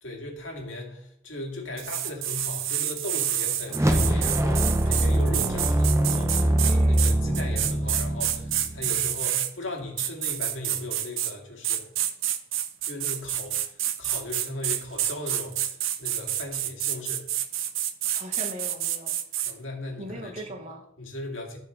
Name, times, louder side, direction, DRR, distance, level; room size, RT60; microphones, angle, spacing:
voice 1, 0.0-11.9 12.8-17.3 19.4-20.6 21.0-21.6, left 2 dB, 75° left, 1 dB, 2.0 m, -38 dB
sound 1, 1.8-9.5 10.0-11.3 11.6-19.5, right 11 dB, 85° right, 0.7 m, -28 dB
sound 2, 3.7-9.1, right 1 dB, 15° right, 0.6 m, -23 dB
voice 2, 6.6-7.0 18.1-19.2 20.0-20.8, equal, 35° right, 4 dB, 1.1 m, -39 dB
14.0 x 4.7 x 3.8 m, 0.72 s
head